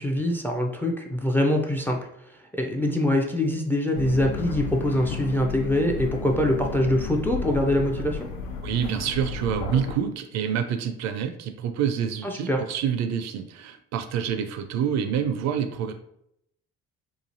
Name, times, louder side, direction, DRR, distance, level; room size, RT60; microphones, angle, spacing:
voice 1, 0.0-2.1 2.6-8.3 12.2-12.6, left 1 dB, 5° left, 3 dB, 0.4 m, -24 dB
sound 1, 3.9-9.9, left 4 dB, 65° left, 0.5 m, -33 dB
voice 2, 8.6-15.9, right 8 dB, 55° right, 7 dB, 0.4 m, -27 dB
3.0 x 2.4 x 2.6 m, 0.76 s
hypercardioid pair, 55°, 33 cm